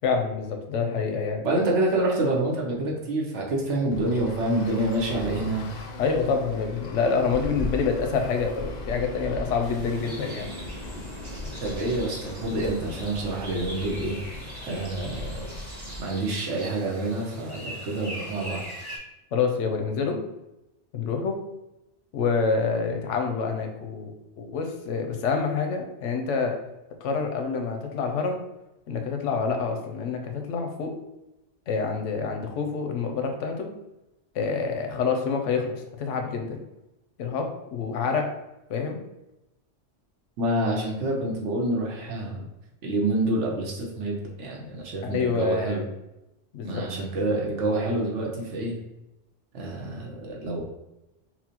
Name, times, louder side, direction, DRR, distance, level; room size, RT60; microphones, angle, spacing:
voice 1, 0.0-1.5 6.0-10.5 19.3-20.2 20.9-21.4 22.1-24.1 24.4-26.6 27.0-28.4 28.9-30.9 31.7-33.7 34.3-36.6 37.2-37.4 37.7-38.3 38.7-39.0 45.0-45.8 46.5-46.9, left 5 dB, 85° left, 4 dB, 0.9 m, -27 dB
voice 2, 1.4-5.7 11.6-14.2 14.6-15.5 16.0-18.6 40.4-42.5 42.8-45.8 46.6-48.8 49.5-50.6, right 1 dB, 75° right, -2 dB, 1.1 m, -27 dB
Traffic noise roadway noise, 3.9-16.0, left 1 dB, 60° left, 0.5 m, -38 dB
sound 1, 9.6-19.0, equal, 20° right, 1.0 m, -42 dB
5.9 x 2.0 x 2.9 m, 0.94 s
omnidirectional pair, 1.2 m